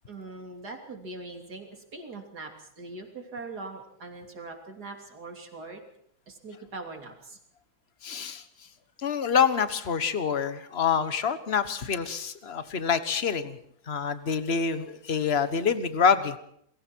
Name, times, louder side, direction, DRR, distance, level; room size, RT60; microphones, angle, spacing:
voice 1, 0.1-5.8 6.3-7.4, right 3 dB, 85° right, 2 dB, 3.7 m, -41 dB
voice 2, 8.0-8.4 9.0-13.6 13.9-16.3, left 6 dB, 45° left, 11 dB, 1.5 m, -26 dB
29.0 x 21.5 x 4.6 m, 0.68 s
omnidirectional pair, 1.7 m